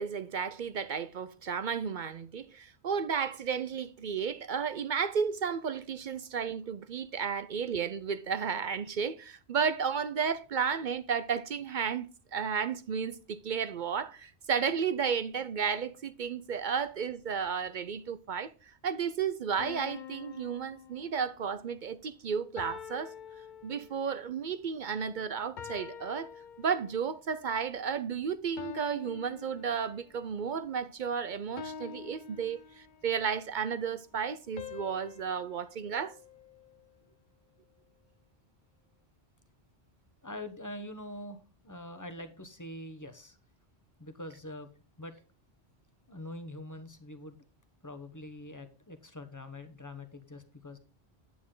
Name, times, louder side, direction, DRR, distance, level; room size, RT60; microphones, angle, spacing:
voice 1, 0.0-18.5 18.8-23.1 23.6-26.3 26.6-36.2, right 6 dB, 55° right, 0.6 m, -33 dB
sound 1, 19.6-21.5 22.6-24.2 25.6-27.1 28.6-30.2 31.6-33.2 34.6-36.9, left 7 dB, 50° left, 0.8 m, -46 dB
voice 2, 40.2-43.4 44.0-44.7 45.0-45.2 46.1-47.4 47.8-50.8, left 1 dB, 20° left, 1.1 m, -44 dB
9.5 x 8.6 x 3.8 m
omnidirectional pair, 1.1 m